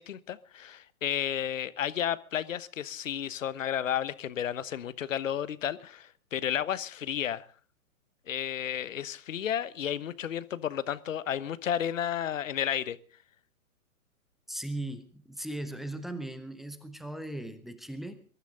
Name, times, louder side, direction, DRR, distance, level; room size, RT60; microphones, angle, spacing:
voice 1, 0.0-7.5 8.3-13.0, left 9 dB, 60° left, 17 dB, 1.2 m, -32 dB
voice 2, 14.5-18.2, right 1 dB, ahead, 10 dB, 0.6 m, -38 dB
22.5 x 14.0 x 3.8 m, 0.40 s
figure-of-eight pair, 125°, 44 cm